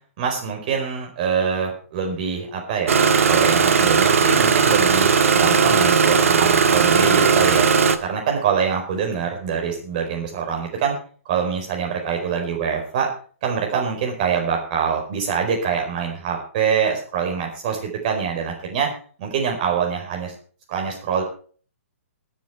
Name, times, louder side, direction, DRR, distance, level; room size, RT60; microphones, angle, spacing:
voice 1, 0.2-7.7 8.0-10.9 11.2-13.1 13.4-18.9 19.2-20.3 20.7-21.2, right 6 dB, 35° right, 2 dB, 4.6 m, -24 dB
Engine starting, 2.9-8.0, right 6 dB, 70° right, 1.5 m, -17 dB
22.0 x 7.5 x 4.5 m, 0.42 s
hypercardioid pair, 165°, 8 cm